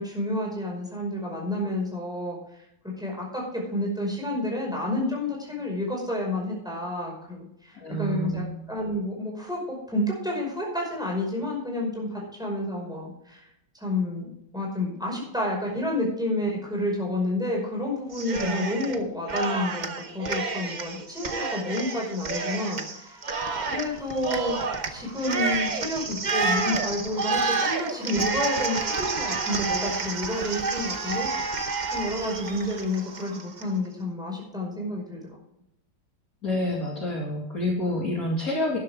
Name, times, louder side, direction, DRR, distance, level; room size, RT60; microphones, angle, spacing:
voice 1, 0.0-2.6 3.0-13.4 13.7-14.3 14.5-23.3 23.6-24.6 24.9-31.7 31.9-35.2, left 1 dB, ahead, -2 dB, 5.4 m, -30 dB
voice 2, 7.7-8.5 18.4-18.6 36.4-38.8, left 1 dB, 50° left, -2 dB, 2.7 m, -28 dB
Cheering, 18.1-19.0 19.3-33.7, right 4 dB, 35° right, 0.8 m, -29 dB
12.5 x 11.0 x 3.6 m, 0.78 s
omnidirectional pair, 2.0 m